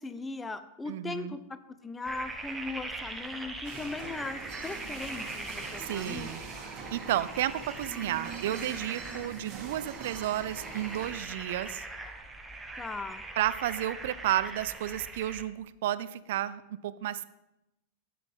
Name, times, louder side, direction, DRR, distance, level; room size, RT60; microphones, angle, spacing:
voice 1, 0.0-6.3 12.8-13.2, left 3 dB, 10° left, 12 dB, 0.7 m, -39 dB
voice 2, 0.9-1.4 5.8-6.4 6.9-11.8 13.4-17.3, right 13 dB, 55° right, 17 dB, 0.4 m, -32 dB
sound 1, 2.0-15.4, right 2 dB, 10° right, 1.1 m, -42 dB
sound 2, 3.6-11.1, right 5 dB, 35° right, 1.8 m, -43 dB
12.5 x 9.3 x 3.7 m, 0.92 s
figure-of-eight pair, 90°, 0 cm